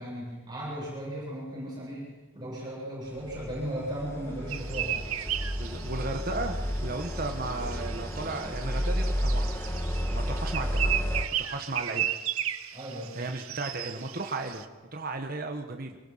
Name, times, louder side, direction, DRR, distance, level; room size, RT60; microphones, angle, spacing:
voice 1, 0.0-2.1 2.3-5.0 12.7-13.2, equal, 20° right, -5 dB, 7.8 m, -36 dB
sound 1, 3.2-11.2, equal, 10° left, 1.7 m, -31 dB
sound 2, 4.5-14.6, right 11 dB, 90° right, 0.9 m, -35 dB
voice 2, 5.6-9.5 10.1-11.0 11.4-12.0 13.1-16.0, right 2 dB, 45° right, 4 dB, 1.3 m, -35 dB
25.0 x 18.5 x 5.6 m, 1.2 s
head